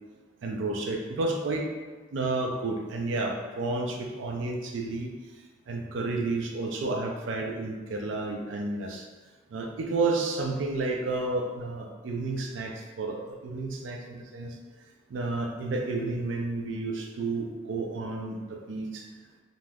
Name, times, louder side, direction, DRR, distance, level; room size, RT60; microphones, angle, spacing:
voice 1, 0.4-1.7 2.1-5.1 5.7-9.1 9.5-14.6 15.1-19.0, right 3 dB, 70° right, 2 dB, 0.3 m, -31 dB
2.5 x 2.2 x 3.2 m, 1.3 s
head